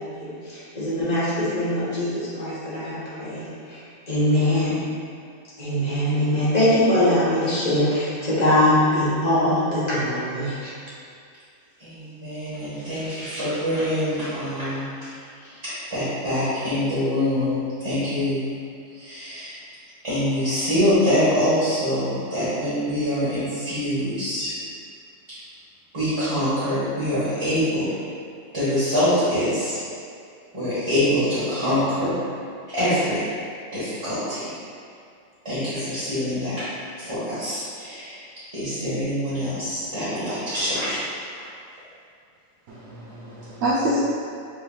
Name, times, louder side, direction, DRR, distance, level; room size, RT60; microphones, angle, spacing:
voice 1, 0.0-4.8 5.6-10.7, left 1 dB, 35° left, -10 dB, 1.3 m, -22 dB
voice 2, 11.8-18.5 18.9-19.6 20.0-24.5 25.9-27.9 28.5-29.8 30.5-32.2 32.7-33.3 33.7-34.6 35.4-36.6 37.0-38.2 38.5-41.0 41.3-41.4, equal, 25° right, -15 dB, 1.3 m, -25 dB
voice 3, 42.7-44.0, right 1 dB, 80° right, -9 dB, 1.0 m, -26 dB
5.3 x 3.4 x 2.3 m, 2.4 s
omnidirectional pair, 1.3 m